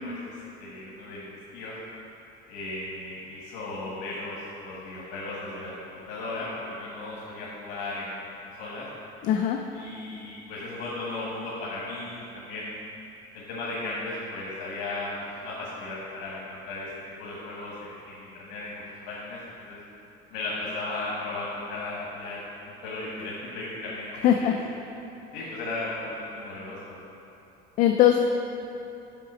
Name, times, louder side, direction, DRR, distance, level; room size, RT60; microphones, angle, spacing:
voice 1, 0.0-1.7 2.5-5.7 6.1-8.9 9.7-12.7 13.3-16.9 17.2-19.8 20.3-22.4 22.7-24.6 25.3-27.1, left 2 dB, 80° left, -6 dB, 1.5 m, -36 dB
voice 2, 9.2-9.6 24.2-24.5 27.8-28.2, left 11 dB, 45° left, 3 dB, 0.4 m, -20 dB
5.9 x 4.9 x 6.1 m, 2.9 s
cardioid pair, 170°, 18 cm